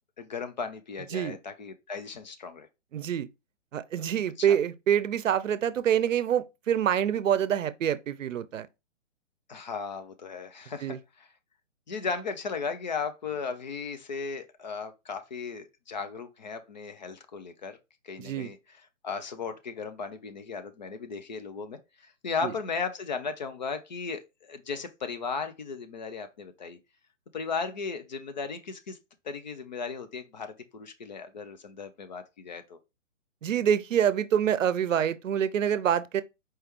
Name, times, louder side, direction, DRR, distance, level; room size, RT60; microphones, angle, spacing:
voice 1, 0.2-2.7 4.4-4.6 9.5-11.3 11.9-17.8 18.0-26.8 27.3-29.0 29.2-32.8, left 5 dB, 40° left, 0.4 m, -36 dB
voice 2, 2.9-3.3 3.7-8.7 10.8-11.0 18.2-18.5 22.4-22.5 33.4-36.2, right 9 dB, 75° right, 0.6 m, -26 dB
4.6 x 3.2 x 3.0 m
hypercardioid pair, 145°, 38 cm